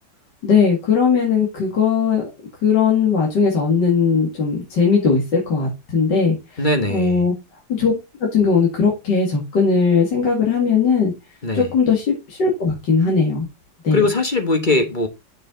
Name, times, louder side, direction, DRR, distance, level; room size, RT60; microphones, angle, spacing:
voice 1, 0.4-2.3 2.6-6.6 6.9-7.3 7.8-7.9 8.2-11.1 11.5-13.5 13.8-14.0, left 5 dB, 65° left, 2.8 m, -18 dB
voice 2, 6.6-7.3 11.4-11.7 13.9-15.1, left 2 dB, 30° left, 1.1 m, -20 dB
7.0 x 6.8 x 3.8 m
omnidirectional pair, 2.1 m